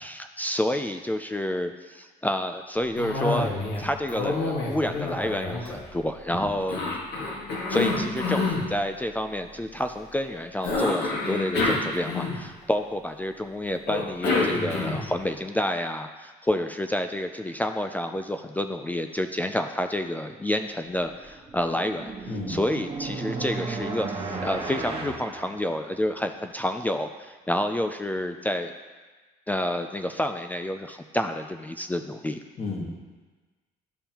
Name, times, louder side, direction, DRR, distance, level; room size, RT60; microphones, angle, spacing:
voice 1, 0.0-3.5 3.8-6.8 7.7-22.1 22.5-28.7 29.5-32.4, left 1 dB, 10° left, 6 dB, 0.3 m, -29 dB
Cough, 3.0-3.8 4.1-6.1 6.7-8.7 10.6-12.6 13.9-15.2, left 3 dB, 75° left, 1.7 m, -27 dB
voice 2, 6.3-6.6 14.5-14.9 22.3-22.6 32.6-32.8, left 3 dB, 40° left, 0 dB, 1.5 m, -33 dB
sound 1, 21.1-26.2, right 3 dB, 35° right, 1.3 m, -35 dB
11.5 x 5.4 x 2.9 m, 1.3 s
cardioid pair, 110°, 17 cm